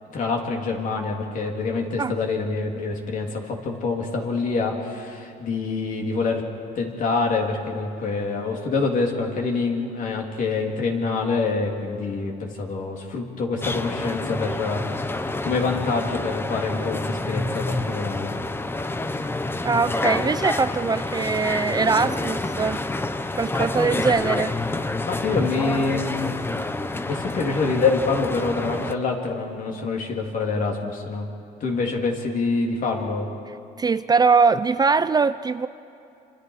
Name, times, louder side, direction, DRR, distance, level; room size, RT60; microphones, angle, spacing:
voice 1, 0.1-6.4 6.8-18.3 25.0-26.4 27.1-31.3 31.6-33.3, left 4 dB, 50° left, 1 dB, 3.4 m, -26 dB
sound 1, 13.6-28.9, left 2 dB, 15° left, 0.8 m, -28 dB
voice 2, 19.6-22.8 23.4-24.6 33.8-35.7, right 4 dB, 25° right, 13 dB, 0.5 m, -21 dB
28.0 x 26.0 x 4.9 m, 2.7 s
cardioid pair, 110°, 17 cm